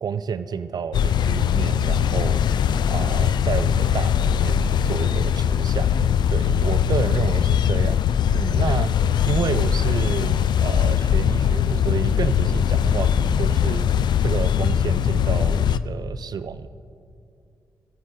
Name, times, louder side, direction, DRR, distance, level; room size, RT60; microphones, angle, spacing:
voice 1, 0.0-2.4 2.9-7.9 8.3-8.9 9.3-13.9 14.2-16.7, right 6 dB, 60° right, 12 dB, 0.5 m, -29 dB
sound 1, 0.9-15.8, left 8 dB, 70° left, 0.4 m, -21 dB
22.5 x 8.9 x 3.7 m, 2.5 s
supercardioid pair, 55°, 8 cm